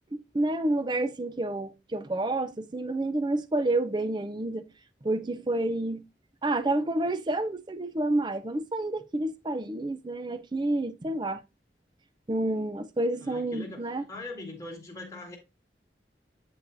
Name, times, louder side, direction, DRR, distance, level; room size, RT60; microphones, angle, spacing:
voice 1, 0.1-4.6 5.0-6.0 6.4-11.4 12.3-14.0, right 2 dB, 25° right, 0.5 m, -29 dB
voice 2, 13.2-15.4, left 2 dB, 20° left, 1.9 m, -41 dB
8.1 x 4.8 x 2.6 m
head